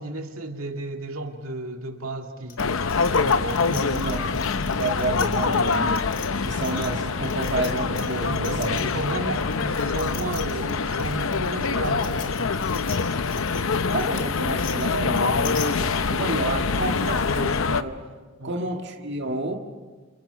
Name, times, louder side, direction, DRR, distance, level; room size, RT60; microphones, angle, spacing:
voice 1, 0.0-4.4 8.2-12.6 18.4-18.6, right 1 dB, 85° right, 2.1 m, -33 dB
sound 1, 2.5-9.1 9.4-15.7, left 8 dB, 40° left, 3.7 m, -41 dB
sound 2, 2.6-17.8, left 4 dB, 70° left, 0.8 m, -25 dB
voice 2, 3.9-6.0 6.4-8.8 13.9-18.0 18.4-19.6, right 2 dB, 55° right, 1.9 m, -30 dB
29.5 x 28.0 x 5.8 m
head